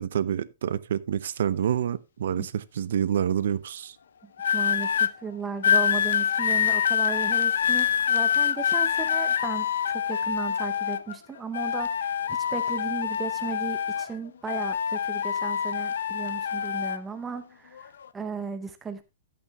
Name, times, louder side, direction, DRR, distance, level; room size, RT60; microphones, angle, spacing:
voice 1, 0.0-4.0, right 9 dB, 60° right, 0.6 m, -27 dB
sound 1, 4.4-5.1 5.6-11.2 11.5-14.2 14.5-17.0 17.8-18.1, left 8 dB, 85° left, 0.6 m, -25 dB
voice 2, 4.5-19.0, right 6 dB, 10° right, 0.7 m, -36 dB
11.0 x 8.4 x 3.0 m
hypercardioid pair, 180°, 0 cm